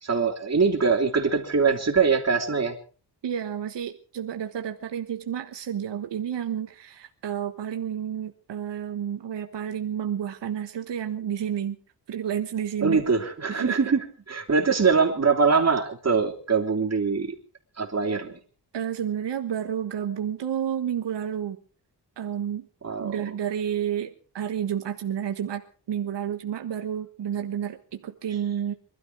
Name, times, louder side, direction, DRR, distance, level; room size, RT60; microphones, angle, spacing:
voice 1, 0.0-2.7 12.8-17.3 17.8-18.4 22.8-23.3, right 5 dB, 40° right, 1 dB, 3.2 m, -23 dB
voice 2, 3.2-11.8 12.1-13.0 13.5-13.8 18.7-21.6 22.2-22.7 23.0-28.7, right 9 dB, 90° right, 6 dB, 1.3 m, -30 dB
23.0 x 12.5 x 4.7 m, 0.38 s
wide cardioid pair, 110°, 41 cm